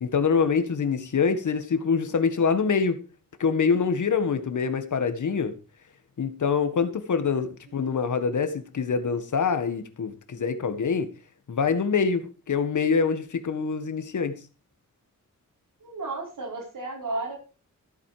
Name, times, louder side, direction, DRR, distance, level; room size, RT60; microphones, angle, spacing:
voice 1, 0.0-3.0 3.4-5.5 6.2-11.1 11.5-14.3, left 5 dB, 70° left, 1.8 m, -25 dB
voice 2, 15.8-17.4, right 2 dB, 85° right, 5.1 m, -34 dB
14.5 x 8.4 x 5.0 m
wide cardioid pair, 170°, 32 cm